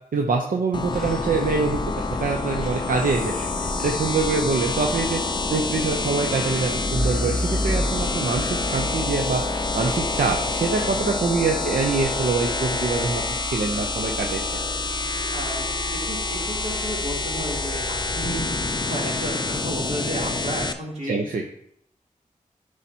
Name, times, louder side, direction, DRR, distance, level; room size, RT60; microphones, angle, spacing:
voice 1, 0.1-3.3 3.6-5.2 5.5-13.2 13.5-14.4 21.0-21.4, right 4 dB, 75° right, 2 dB, 0.7 m, -25 dB
sound 1, 0.7-20.7, left 3 dB, 30° left, 0.5 m, -27 dB
sound 2, 0.9-19.2, left 1 dB, ahead, 1.1 m, -33 dB
voice 2, 2.5-3.7 10.8-11.0 15.3-21.2, right 1 dB, 55° right, -4 dB, 2.9 m, -33 dB
9.9 x 4.9 x 2.8 m, 0.71 s
cardioid pair, 45°, 14 cm